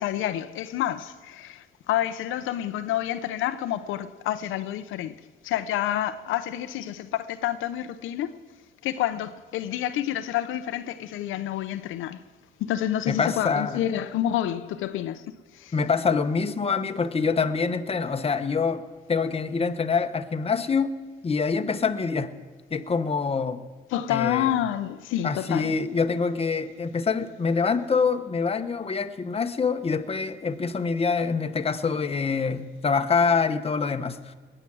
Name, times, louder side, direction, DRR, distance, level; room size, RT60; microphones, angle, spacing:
voice 1, 0.0-5.2 5.4-8.4 8.8-12.2 12.6-15.2 15.5-15.7 23.9-25.7, left 12 dB, 85° left, 0.6 m, -28 dB
voice 2, 13.1-13.8 15.7-18.8 19.1-20.9 21.2-22.4 22.7-23.6 24.1-24.5 25.2-34.2, left 5 dB, 30° left, 0.9 m, -25 dB
20.0 x 8.9 x 6.1 m
cardioid pair, 90°, 20 cm